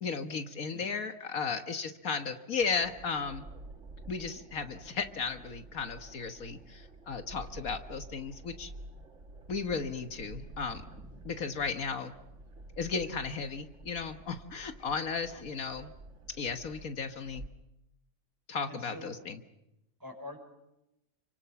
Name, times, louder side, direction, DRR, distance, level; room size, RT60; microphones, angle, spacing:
voice 1, 0.0-3.4 4.1-8.7 9.5-10.8 11.3-12.1 12.8-15.9 16.4-17.4 18.5-19.4, left 5 dB, 75° left, 8 dB, 1.8 m, -35 dB
sound 1, 2.6-17.5, right 2 dB, 55° right, 2.5 m, -50 dB
voice 2, 18.7-19.2 20.0-20.4, left 1 dB, 15° right, 3 dB, 5.8 m, -46 dB
29.5 x 24.5 x 7.0 m, 0.88 s
omnidirectional pair, 1.5 m